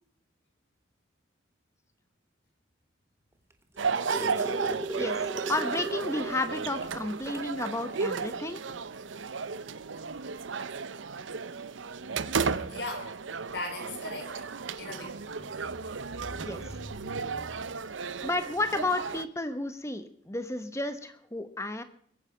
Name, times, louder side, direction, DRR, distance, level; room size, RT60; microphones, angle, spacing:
sound 1, 3.5-6.4 6.8-6.9 7.3-7.5 8.6-8.7, right 2 dB, 15° right, 1.3 m, -36 dB
sound 2, 3.8-19.3, right 5 dB, 85° right, 0.7 m, -34 dB
voice 1, 5.0-8.6 16.4-16.6 18.2-21.8, left 2 dB, 15° left, 10 dB, 1.0 m, -32 dB
voice 2, 12.7-13.1 13.5-14.5 14.8-17.7, left 2 dB, 60° left, 4 dB, 4.6 m, -41 dB
22.0 x 9.8 x 5.0 m, 0.64 s
head